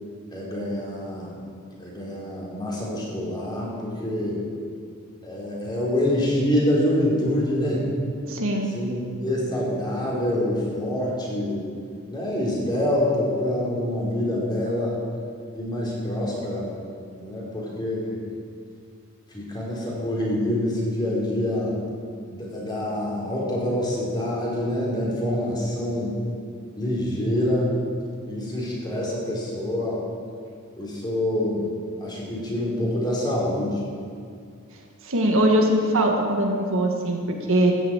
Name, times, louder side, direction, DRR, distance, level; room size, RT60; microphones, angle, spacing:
voice 1, 0.3-1.3 1.8-4.4 5.2-7.9 8.7-11.6 12.1-15.0 15.5-16.7 17.2-18.2 19.3-21.7 22.3-26.1 26.8-27.8 28.3-30.0 30.8-31.6 32.0-33.8, left 1 dB, 20° left, -5 dB, 4.1 m, -26 dB
voice 2, 8.3-8.8 35.0-37.7, right 1 dB, 65° right, 1 dB, 1.8 m, -21 dB
14.0 x 8.1 x 8.8 m, 2.3 s
head